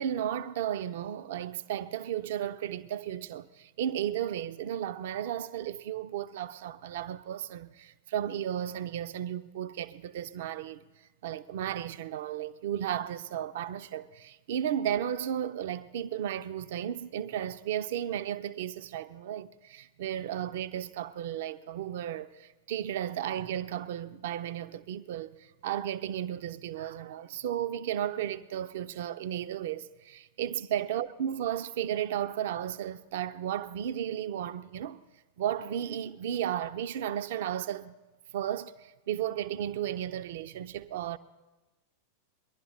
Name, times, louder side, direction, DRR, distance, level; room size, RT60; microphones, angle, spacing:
voice 1, 0.0-10.8 11.2-35.0 35.4-38.0 38.3-41.2, right 10 dB, 55° right, 0.4 m, -34 dB
21.5 x 11.5 x 4.3 m
figure-of-eight pair, 90°, 0 cm